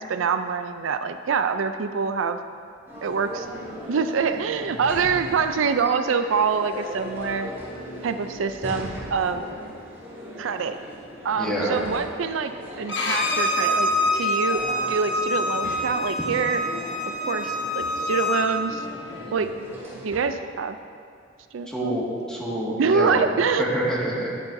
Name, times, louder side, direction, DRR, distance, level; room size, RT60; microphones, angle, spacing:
voice 1, 0.0-2.4 3.0-3.5 3.9-7.5 8.0-9.4 10.4-10.8 11.2-12.5 12.8-16.6 17.3-18.8 19.3-19.5 20.0-20.8 21.5-22.0 22.8-23.6, right 5 dB, 90° right, 9 dB, 0.4 m, -25 dB
sound 1, 2.9-20.2, equal, 15° right, 2.6 m, -38 dB
voice 2, 11.3-11.8 16.2-16.3 19.1-19.2 21.7-23.2 23.6-24.3, equal, 5° left, -6 dB, 1.9 m, -27 dB
Bowed string instrument, 12.9-18.5, left 1 dB, 65° left, 1.2 m, -25 dB
11.5 x 10.5 x 2.7 m, 2.3 s
head